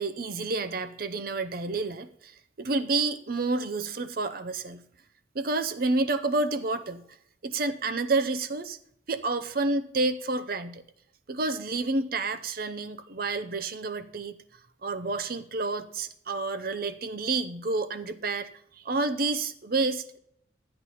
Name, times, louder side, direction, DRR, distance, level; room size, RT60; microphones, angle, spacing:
voice 1, 0.0-4.8 5.3-7.0 7.4-8.8 9.1-10.8 11.3-14.4 14.8-18.5 18.8-20.2, right 3 dB, 50° right, 11 dB, 0.6 m, -29 dB
12.5 x 8.8 x 4.1 m, 0.71 s
head